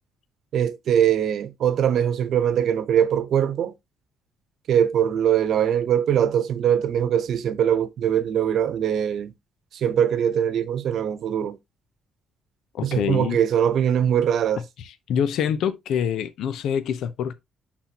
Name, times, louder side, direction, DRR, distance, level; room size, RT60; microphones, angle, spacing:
voice 1, 0.5-3.7 4.7-9.3 9.7-11.6 12.8-14.6, right 9 dB, 60° right, 0.9 m, -22 dB
voice 2, 12.7-13.4 14.8-17.3, left 8 dB, 70° left, 0.8 m, -26 dB
11.5 x 4.3 x 2.9 m
cardioid pair, 135°, 0 cm